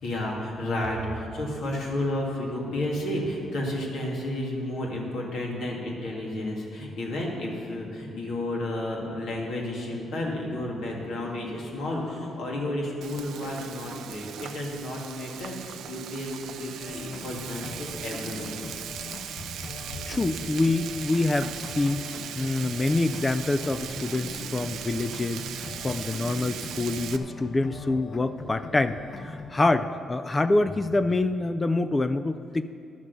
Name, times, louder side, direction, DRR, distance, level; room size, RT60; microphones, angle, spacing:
voice 1, 0.0-18.5 19.0-19.1 19.4-19.5 19.9-20.0, left 1 dB, 75° left, -2 dB, 2.3 m, -32 dB
Frying (food), 13.0-27.2, right 9 dB, 75° right, 0.5 m, -39 dB
sound 1, 16.8-29.5, left 4 dB, 55° left, 0.8 m, -41 dB
voice 2, 20.1-22.1 22.4-32.6, left 2 dB, 25° left, 10 dB, 0.4 m, -26 dB
11.0 x 7.3 x 6.7 m, 2.5 s
cardioid pair, 90°, 0 cm